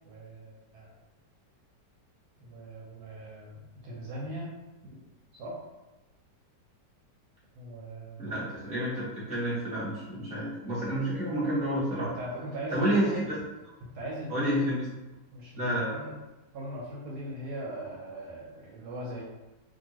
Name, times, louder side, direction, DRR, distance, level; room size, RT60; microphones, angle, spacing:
voice 1, 0.1-0.9 2.4-4.5 5.3-5.6 7.5-8.4 12.0-13.3 13.9-14.7 15.3-16.1 16.5-19.2, right 1 dB, 70° right, -4 dB, 1.0 m, -39 dB
voice 2, 8.2-12.1 12.7-13.2 14.3-14.8 15.6-15.9, right 1 dB, 5° right, -9 dB, 0.7 m, -29 dB
2.7 x 2.4 x 2.9 m, 1.1 s
omnidirectional pair, 1.9 m